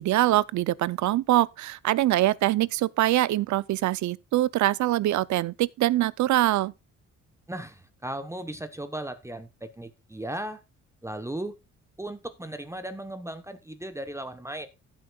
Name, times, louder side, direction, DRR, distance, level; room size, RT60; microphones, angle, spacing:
voice 1, 0.0-6.7, right 15 dB, 70° right, 0.6 m, -24 dB
voice 2, 7.5-10.6 11.0-11.5 12.0-14.7, right 1 dB, 10° right, 1.0 m, -36 dB
14.5 x 8.1 x 2.3 m
cardioid pair, 90°, 30 cm